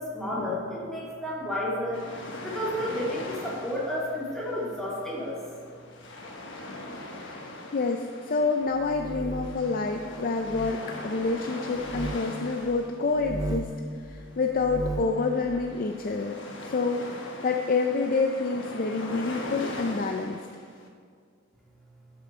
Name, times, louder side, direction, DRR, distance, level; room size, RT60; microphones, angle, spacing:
voice 1, 0.0-2.1 2.4-5.4, left 1 dB, ahead, -6 dB, 2.5 m, -31 dB
sound 1, 1.9-20.9, left 1 dB, 70° left, 1.2 m, -41 dB
voice 2, 7.7-13.7 13.9-20.4, left 4 dB, 45° left, 4 dB, 0.5 m, -28 dB
sound 2, 8.7-9.7 10.4-10.8 11.8-12.2 13.1-13.8 14.5-15.2, right 2 dB, 20° right, 0.5 m, -35 dB
12.0 x 6.7 x 4.3 m, 2.1 s
head